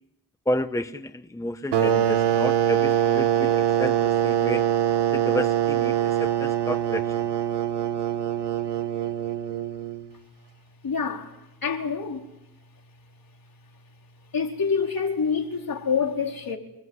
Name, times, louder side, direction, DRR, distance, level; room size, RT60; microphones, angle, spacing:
voice 1, 0.5-4.6 5.1-7.1, left 1 dB, 10° left, 1.0 m, -31 dB
sound 1, 1.7-10.1, right 10 dB, 85° right, 1.5 m, -23 dB
voice 2, 10.8-12.3 14.3-16.6, left 6 dB, 60° left, 4.6 m, -27 dB
28.5 x 20.0 x 9.9 m
cardioid pair, 80°, 40 cm